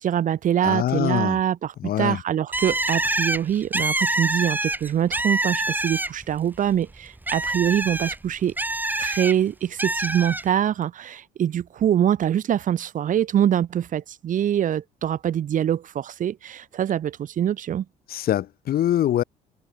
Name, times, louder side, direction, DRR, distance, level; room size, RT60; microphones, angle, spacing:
voice 1, 0.0-8.5 9.0-17.8, right 10 dB, 50° right, 1.6 m, -24 dB
voice 2, 0.6-1.4 1.8-2.2 18.1-19.2, left 12 dB, 60° left, 4.1 m, -24 dB
Bird, 2.5-6.4 6.7-9.3 9.8-10.4, right 2 dB, 10° right, 6.1 m, -26 dB
open air
cardioid pair, 110°, 17 cm